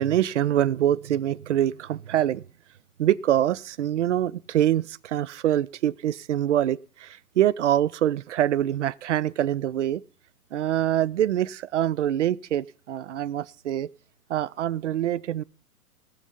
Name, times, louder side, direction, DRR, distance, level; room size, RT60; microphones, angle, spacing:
voice 1, 0.0-2.4 3.0-10.0 10.5-13.9 14.3-15.4, right 11 dB, 50° right, 0.5 m, -25 dB
18.0 x 7.2 x 5.2 m
figure-of-eight pair, 115°, 46 cm